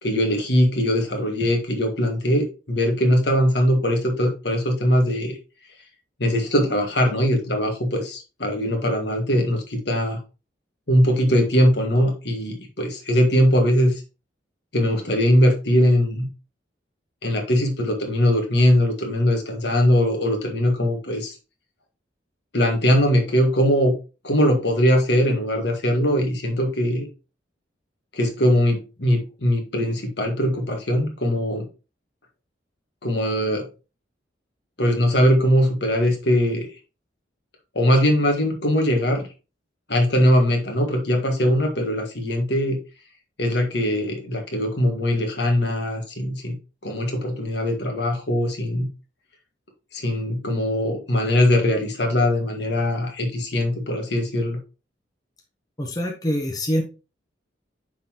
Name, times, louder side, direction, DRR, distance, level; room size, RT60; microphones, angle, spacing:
voice 1, 0.0-5.4 6.2-10.2 10.9-14.0 14.7-16.3 17.2-21.4 22.5-23.9 24.2-27.1 28.1-31.7 33.0-33.6 34.8-36.7 37.7-39.3 39.9-42.8 43.4-46.5 46.8-48.9 49.9-54.6, equal, 60° left, 3 dB, 1.7 m, -21 dB
voice 2, 55.8-56.8, equal, 20° left, 1 dB, 0.9 m, -24 dB
9.4 x 3.9 x 2.9 m, 0.31 s
head